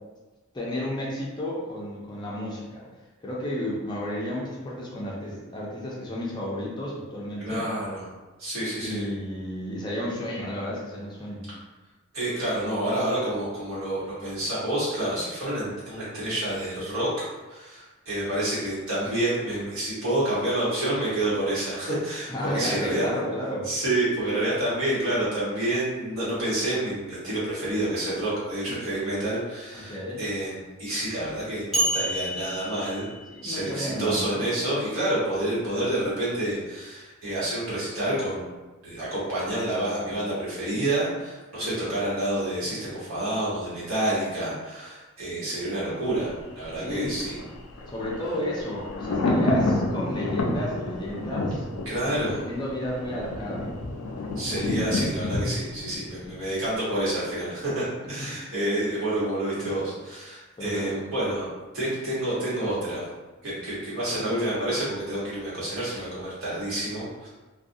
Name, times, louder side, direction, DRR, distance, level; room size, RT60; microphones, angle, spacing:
voice 1, 0.5-2.8 3.2-7.6 8.8-11.5 22.3-23.7 29.7-30.2 33.3-34.5 46.8-47.2 47.9-51.6 52.1-53.7 59.6-59.7 60.6-61.0 64.1-64.3, left 1 dB, 20° left, -5 dB, 0.5 m, -32 dB
voice 2, 7.4-8.0 8.4-9.0 12.1-17.1 17.5-23.1 23.6-33.1 33.4-38.5 38.8-47.4 51.8-52.4 54.4-61.5 61.7-63.0 63.4-67.3, right 1 dB, 75° right, -9 dB, 1.2 m, -28 dB
sound 1, 31.7-33.6, right 1 dB, ahead, 0.9 m, -29 dB
Thunder, 46.1-57.1 57.4-57.5, left 2 dB, 85° left, 0.4 m, -30 dB
2.5 x 2.3 x 2.6 m, 1.2 s
head